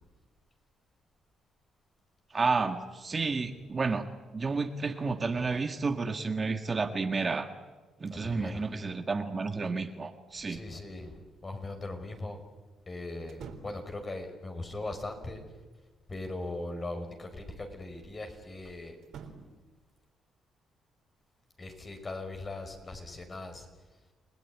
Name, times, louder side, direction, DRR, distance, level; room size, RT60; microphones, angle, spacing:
voice 1, 2.3-7.5 8.0-10.6, right 4 dB, 30° right, 7 dB, 1.7 m, -31 dB
voice 2, 8.1-8.6 10.4-12.4 12.9-15.4 16.1-19.0 21.6-24.0, left 2 dB, 30° left, 5 dB, 5.4 m, -40 dB
sound 1, 13.2-13.9 15.5-16.4 19.0-19.6, right 6 dB, 70° right, 3.7 m, -48 dB
29.0 x 19.0 x 9.8 m, 1.3 s
cardioid pair, 90°, 0 cm